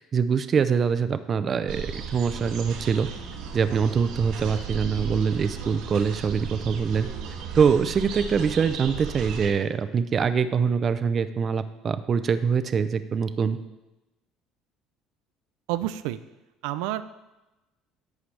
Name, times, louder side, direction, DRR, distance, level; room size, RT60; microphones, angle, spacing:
voice 1, 0.0-3.1 3.5-7.1 7.5-13.6, right 6 dB, 25° right, 11 dB, 0.4 m, -24 dB
sound 1, 1.7-9.5, right 6 dB, 70° right, 1.3 m, -35 dB
voice 2, 15.7-16.2 16.6-17.0, right 14 dB, 90° right, 12 dB, 0.4 m, -28 dB
11.0 x 8.5 x 3.3 m, 1.0 s
cardioid pair, 165°, 0 cm